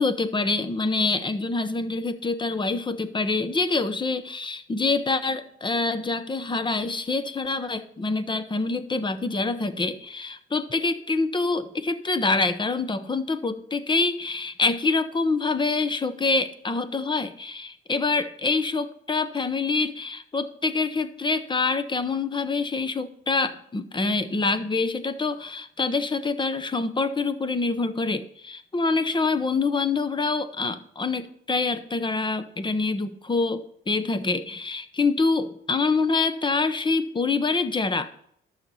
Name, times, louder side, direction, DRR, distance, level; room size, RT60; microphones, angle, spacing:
voice 1, 0.0-38.1, left 3 dB, 25° left, 12 dB, 0.9 m, -26 dB
12.0 x 6.7 x 5.6 m, 0.69 s
cardioid pair, 90°, 20 cm